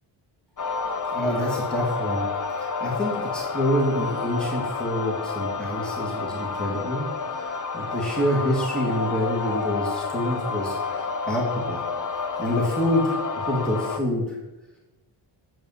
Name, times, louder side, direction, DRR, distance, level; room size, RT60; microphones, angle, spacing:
sound 1, 0.6-14.0, left 5 dB, 40° left, 0.8 m, -30 dB
voice 1, 1.1-2.3 2.6-7.1 7.4-11.8 12.4-14.2, equal, ahead, -4 dB, 2.3 m, -27 dB
7.8 x 7.0 x 7.4 m, 1.1 s
wide cardioid pair, 140°, 48 cm